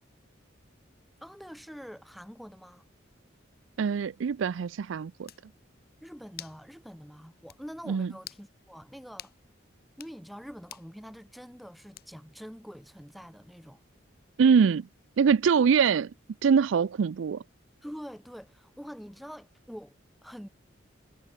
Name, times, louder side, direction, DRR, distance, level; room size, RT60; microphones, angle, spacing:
voice 1, 1.2-2.8 6.0-9.3 10.0-13.8 17.8-20.5, equal, ahead, 2.9 m, -45 dB
voice 2, 3.8-5.3 7.9-8.1 14.4-14.8 15.2-16.1 16.4-17.4, right 6 dB, 80° right, 0.4 m, -23 dB
sound 1, 5.3-5.5 6.4-6.6 7.0-7.1 7.5-7.6 8.2-8.5 9.2-9.4 9.9-10.2 10.7-10.9 12.0-12.3, left 11 dB, 50° left, 5.3 m, -46 dB
head